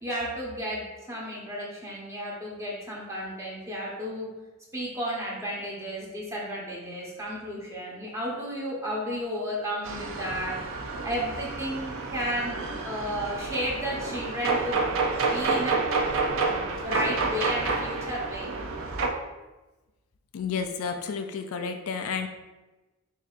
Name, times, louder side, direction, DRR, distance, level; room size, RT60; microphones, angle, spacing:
voice 1, 0.0-4.3 4.7-10.6 11.0-15.9 16.4-18.5, equal, 15° right, -5 dB, 1.1 m, -33 dB
sound 1, 9.9-19.1, right 3 dB, 65° right, 0.5 m, -29 dB
voice 2, 20.3-22.3, left 6 dB, 75° left, 6 dB, 0.4 m, -31 dB
7.0 x 2.8 x 2.5 m, 1.1 s
head